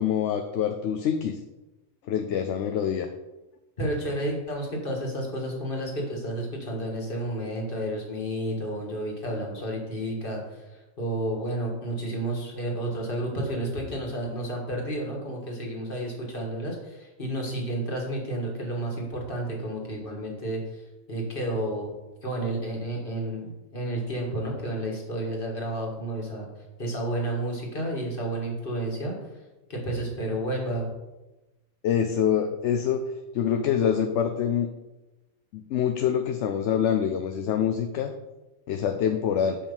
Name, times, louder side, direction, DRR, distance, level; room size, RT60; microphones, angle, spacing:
voice 1, 0.0-1.4 2.0-3.1 31.8-33.1 33.3-34.7 35.5-38.1 38.7-39.6, left 8 dB, 65° left, 6 dB, 0.9 m, -25 dB
voice 2, 3.8-21.9 22.2-26.5 26.8-29.2 29.7-30.9, right 1 dB, 40° left, 0 dB, 2.0 m, -31 dB
7.2 x 5.2 x 5.4 m, 1.0 s
omnidirectional pair, 1.4 m